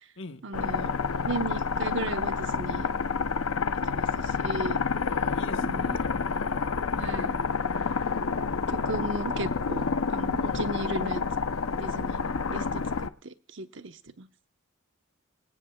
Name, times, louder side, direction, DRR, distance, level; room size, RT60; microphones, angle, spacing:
voice 1, 0.4-0.9 1.2-2.9 3.9-4.8 5.6-6.0 7.0-7.3 8.7-11.2 11.7-14.3, right 2 dB, 60° right, 9 dB, 1.0 m, -36 dB
sound 1, 0.5-13.1, left 5 dB, 90° left, 0.7 m, -29 dB
voice 2, 5.1-6.1 8.1-8.8 10.4-10.7, left 2 dB, 65° left, 7 dB, 1.3 m, -44 dB
26.0 x 17.5 x 2.4 m, 0.33 s
head